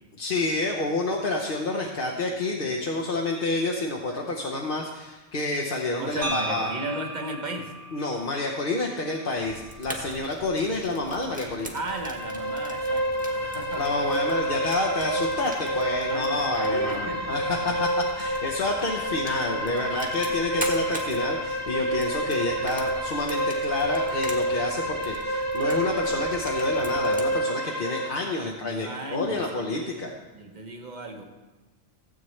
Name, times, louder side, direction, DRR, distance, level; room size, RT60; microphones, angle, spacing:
voice 1, 0.2-6.7 7.9-11.7 13.8-30.1, left 2 dB, 45° left, -1 dB, 1.0 m, -29 dB
voice 2, 6.0-7.7 10.1-10.3 11.7-14.2 16.1-17.8 20.2-20.5 28.4-29.9 30.3-31.2, right 2 dB, 35° right, 3 dB, 1.2 m, -36 dB
sound 1, 6.2-10.3, right 1 dB, 80° right, 2.5 m, -37 dB
Fire, 9.4-27.3, equal, 5° right, 1.3 m, -43 dB
sound 2, 11.7-28.1, right 1 dB, 15° left, 1.0 m, -28 dB
16.0 x 8.4 x 3.2 m, 1.2 s
omnidirectional pair, 1.4 m